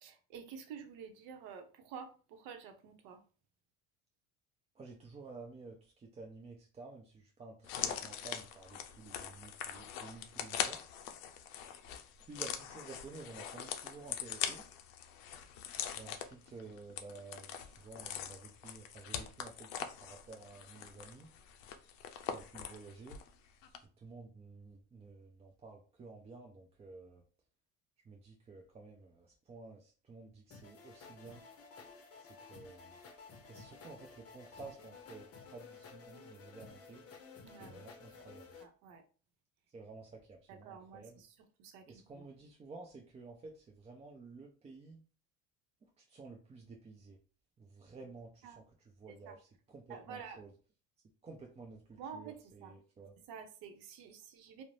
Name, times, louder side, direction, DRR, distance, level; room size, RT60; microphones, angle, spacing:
voice 1, 0.0-3.2 37.4-37.9 38.6-39.0 40.5-41.8 42.1-42.3 48.4-48.6 49.1-49.4 49.9-50.4 52.0-52.8 53.3-54.6, right 6 dB, 65° right, 6 dB, 0.7 m, -50 dB
voice 2, 4.8-10.8 12.3-14.7 15.6-21.3 22.3-23.2 24.0-27.2 28.1-31.4 32.2-33.0 33.5-37.0 37.5-38.5 39.7-41.2 41.9-45.0 45.8-47.2 47.6-48.6 49.0-50.5 51.2-53.1, right 3 dB, 20° right, 0 dB, 0.3 m, -52 dB
sound 1, 7.6-23.3 23.6-23.8, left 9 dB, 80° left, 0.5 m, -42 dB
sound 2, 30.5-38.6, left 5 dB, 40° left, 0.7 m, -54 dB
2.4 x 2.0 x 3.0 m, 0.38 s
supercardioid pair, 90°, 39 cm